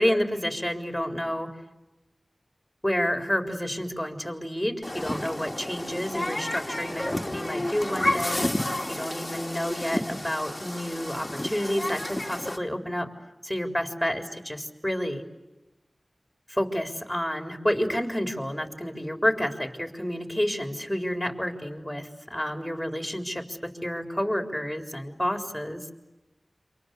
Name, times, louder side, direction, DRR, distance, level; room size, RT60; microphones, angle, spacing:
voice 1, 0.0-1.5 2.8-8.5 8.9-13.1 13.4-15.2 16.5-25.8, equal, 5° left, 5 dB, 4.1 m, -29 dB
Human group actions, 4.8-12.6, left 1 dB, 20° left, 1.8 m, -31 dB
28.0 x 25.5 x 8.1 m, 1.0 s
wide cardioid pair, 50°, 0 cm